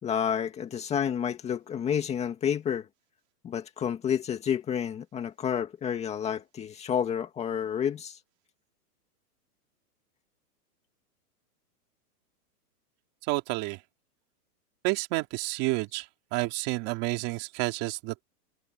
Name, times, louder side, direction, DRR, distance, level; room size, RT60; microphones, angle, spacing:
voice 1, 0.0-2.9 3.4-8.2, left 8 dB, 15° left, 2.0 m, -30 dB
voice 2, 13.3-13.8 14.8-16.0 16.3-18.2, right 22 dB, 30° right, 2.9 m, -30 dB
supercardioid pair, 165°, 47 cm